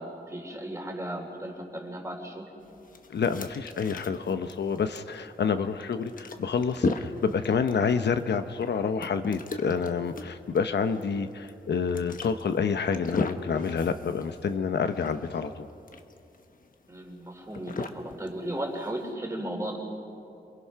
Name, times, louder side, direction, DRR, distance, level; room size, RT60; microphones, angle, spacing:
voice 1, 0.0-2.5 16.9-19.8, right 1 dB, 15° right, 1 dB, 3.6 m, -35 dB
sound 1, 2.6-19.1, left 3 dB, 55° left, 1.2 m, -37 dB
voice 2, 3.1-15.7, left 6 dB, 80° left, 9 dB, 0.9 m, -28 dB
28.0 x 21.0 x 5.7 m, 2.7 s
wide cardioid pair, 100°, 17 cm